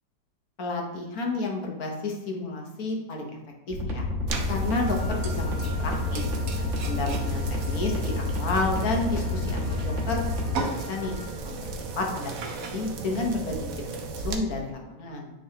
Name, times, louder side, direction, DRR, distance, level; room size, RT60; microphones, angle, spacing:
voice 1, 0.6-3.3 3.7-4.1 4.5-6.2 6.8-10.3 10.6-11.1 11.4-11.6 12.0-13.7 14.0-15.3, left 3 dB, 60° left, 1 dB, 1.4 m, -31 dB
sound 1, 3.7-10.6, left 3 dB, 45° right, 1.5 m, -29 dB
sound 2, 4.3-14.4, right 4 dB, 60° right, 1.0 m, -35 dB
Wind instrument woodwind instrument, 4.8-11.3, left 3 dB, 30° right, 1.8 m, -45 dB
9.3 x 3.8 x 2.8 m, 1.1 s
omnidirectional pair, 1.9 m